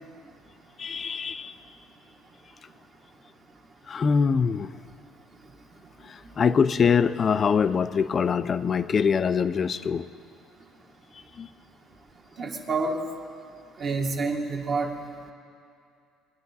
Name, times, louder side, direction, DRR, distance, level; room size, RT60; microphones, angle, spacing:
voice 1, 0.8-1.5 3.9-4.7 6.0-10.1 11.4-11.5, left 6 dB, 25° left, 14 dB, 0.3 m, -24 dB
voice 2, 12.4-13.0 13.8-14.9, right 3 dB, 35° right, 1 dB, 1.1 m, -28 dB
22.0 x 10.5 x 4.1 m, 2.4 s
cardioid pair, 160°, 0 cm